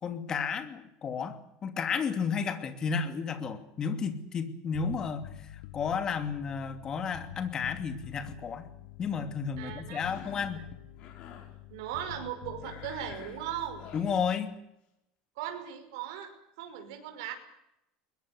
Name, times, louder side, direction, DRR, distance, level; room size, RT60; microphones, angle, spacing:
voice 1, 0.0-5.3 5.7-8.7 9.0-10.7 13.9-14.5, left 6 dB, 25° left, 9 dB, 2.7 m, -32 dB
Bass guitar, 4.7-14.3, left 13 dB, 70° left, 2.4 m, -47 dB
voice 2, 9.6-10.2 10.5-10.7 11.7-13.8 15.4-16.3 16.6-17.3, right 10 dB, 75° right, 5 dB, 5.6 m, -38 dB
Cough, 10.0-10.6 11.0-11.5 12.6-14.2, left 8 dB, 45° left, 6.4 m, -49 dB
21.5 x 21.0 x 8.0 m, 0.82 s
cardioid pair, 160°, 3 cm